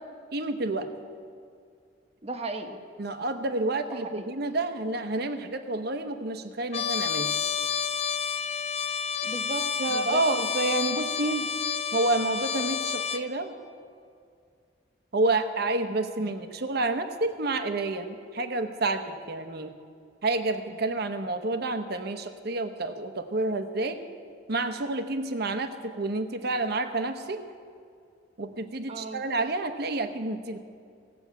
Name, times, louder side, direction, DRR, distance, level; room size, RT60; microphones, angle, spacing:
voice 1, 0.3-0.9 3.0-7.3 9.8-11.5 11.9-13.5 15.1-19.8 20.2-24.0 24.5-27.4 28.4-30.6, right 2 dB, 60° right, 8 dB, 0.9 m, -29 dB
voice 2, 2.2-2.8 3.9-4.3 9.2-10.2 28.9-29.3, right 2 dB, 35° right, 5 dB, 1.0 m, -37 dB
Trumpet, 6.7-13.3, left 7 dB, 35° left, 0.5 m, -30 dB
17.0 x 7.0 x 8.2 m, 2.3 s
head